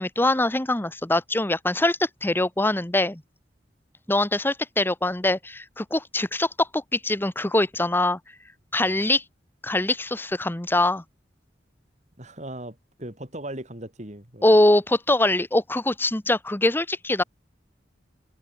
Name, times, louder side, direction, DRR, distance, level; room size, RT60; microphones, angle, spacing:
voice 1, 0.0-3.2 4.1-8.2 8.7-9.2 9.6-11.0 14.4-17.2, left 1 dB, 10° left, 1.0 m, -23 dB
voice 2, 12.2-14.5, right 1 dB, 40° right, 6.3 m, -38 dB
head